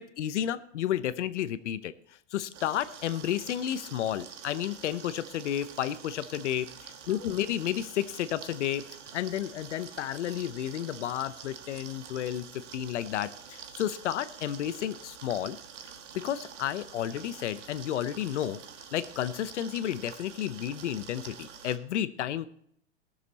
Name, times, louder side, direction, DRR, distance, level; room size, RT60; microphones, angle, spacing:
voice 1, 0.0-1.9 2.3-8.8 9.1-12.4 12.7-15.6 16.1-18.6 18.9-22.5, left 11 dB, 75° left, 13 dB, 0.8 m, -32 dB
sound 1, 2.5-21.8, right 7 dB, 80° right, 1.4 m, -47 dB
18.5 x 6.7 x 4.2 m, 0.69 s
supercardioid pair, 155°, 36 cm